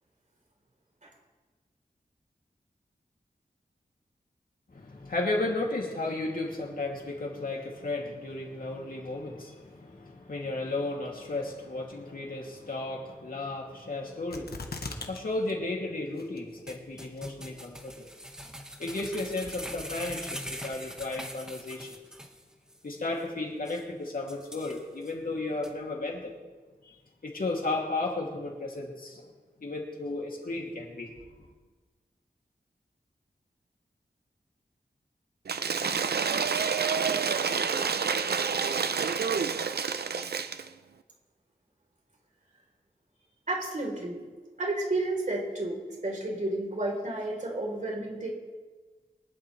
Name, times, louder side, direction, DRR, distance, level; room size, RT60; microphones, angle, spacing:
voice 1, 4.7-18.1 18.8-21.9 22.8-26.3 26.9-27.0 27.2-29.3 29.6-31.1, left 2 dB, 65° left, -1 dB, 2.7 m, -34 dB
sound 1, 14.3-15.2 15.5-15.6 16.2-16.6 17.2-17.3, left 4 dB, 80° left, 1.3 m, -38 dB
sound 2, 16.7-22.4 22.7-22.8 23.2-23.3 23.7-23.8 24.3-25.1 25.6-25.7, equal, 5° right, 1.4 m, -42 dB
Cheering / Applause / Crowd, 35.5-40.7, right 6 dB, 85° right, 0.6 m, -28 dB
voice 2, 43.5-44.2 44.6-48.3, right 2 dB, 50° right, -1 dB, 3.8 m, -31 dB
23.5 x 11.5 x 3.3 m, 1.3 s
wide cardioid pair, 90°, 16 cm